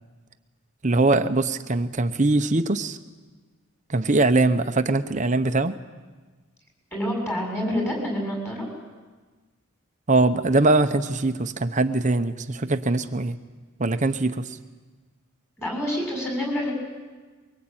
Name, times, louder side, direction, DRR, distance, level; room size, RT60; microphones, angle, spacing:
voice 1, 0.8-3.0 3.9-5.7 10.1-13.4 13.8-14.6, right 2 dB, 35° right, 9 dB, 0.8 m, -22 dB
voice 2, 6.9-8.7 15.6-16.7, equal, 10° left, 0 dB, 7.0 m, -27 dB
23.5 x 23.0 x 8.9 m, 1.3 s
head